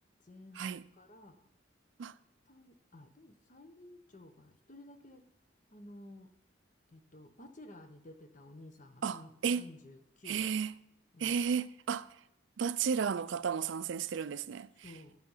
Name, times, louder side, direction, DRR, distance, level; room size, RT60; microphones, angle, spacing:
voice 1, 0.2-1.5 2.5-5.2 5.7-6.3 6.9-10.5 11.1-11.4 14.8-15.2, left 1 dB, 40° left, 0.9 m, -53 dB
voice 2, 9.0-9.7 10.3-10.7 11.2-12.1 12.6-14.9, right 6 dB, 70° right, 0.4 m, -33 dB
11.5 x 5.9 x 5.6 m
head